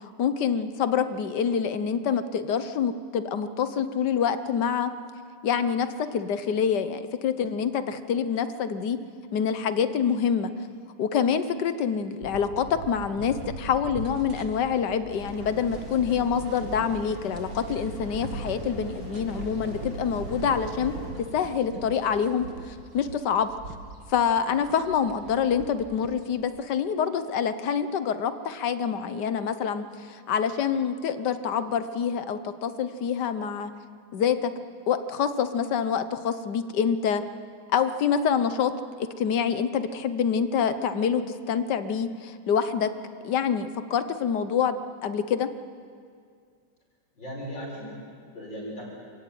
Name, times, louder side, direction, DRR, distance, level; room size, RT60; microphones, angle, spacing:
voice 1, 0.2-4.9 5.4-9.0 9.3-10.5 11.0-20.9 21.3-23.7 24.1-33.7 34.1-34.5 34.9-37.2 37.7-38.7 39.0-42.9 43.2-44.8 45.0-45.5, left 7 dB, 70° left, 12 dB, 1.6 m, -26 dB
sound 1, 12.2-26.4, right 3 dB, 85° right, 2.4 m, -41 dB
sound 2, 15.1-21.1, equal, 50° left, 7.8 m, -41 dB
voice 2, 47.1-48.8, equal, 85° left, -4 dB, 7.7 m, -38 dB
26.5 x 15.5 x 9.2 m, 2.2 s
omnidirectional pair, 2.0 m